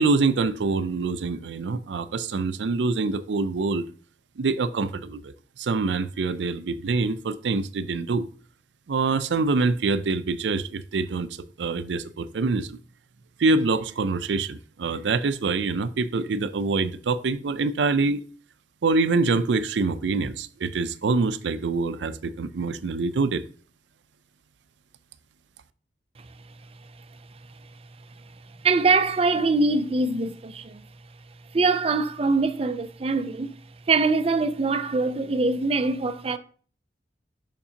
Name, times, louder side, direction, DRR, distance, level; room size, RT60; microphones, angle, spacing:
voice 1, 0.0-3.8 4.4-5.3 5.6-8.3 8.9-11.3 11.6-12.8 13.4-18.2 18.8-23.4, right 3 dB, 90° right, 0.5 m, -25 dB
voice 2, 28.6-30.8 31.5-33.5 33.9-36.4, right 3 dB, 35° right, 0.4 m, -23 dB
7.0 x 5.9 x 2.8 m
head